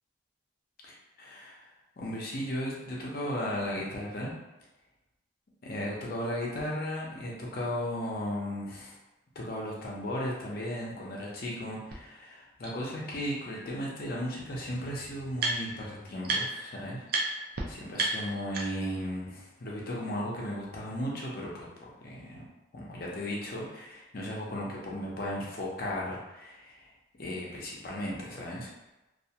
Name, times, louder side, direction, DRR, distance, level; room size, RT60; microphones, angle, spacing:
voice 1, 0.8-1.7 2.0-4.3 5.6-9.0 9.4-22.5 22.7-26.9 27.2-28.7, equal, 50° left, -4 dB, 0.6 m, -36 dB
sound 1, 11.9-12.0 12.6-12.7 14.0-14.1 14.3-15.9 16.2-16.7 17.1-17.2 17.5-17.6 17.9-19.0, right 3 dB, 55° right, 0.4 m, -32 dB
2.4 x 2.2 x 2.7 m, 1.0 s
head